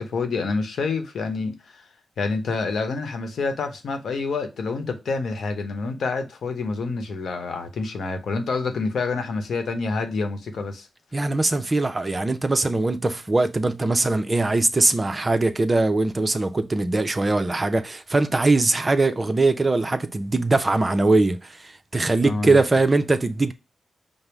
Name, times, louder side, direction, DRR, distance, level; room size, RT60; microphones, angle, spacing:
voice 1, 0.0-1.8 2.2-10.9 22.2-22.6, left 4 dB, 75° left, 0.9 m, -27 dB
voice 2, 11.1-23.5, right 2 dB, 30° right, 0.5 m, -21 dB
5.3 x 2.0 x 4.5 m
cardioid pair, 80°, 0 cm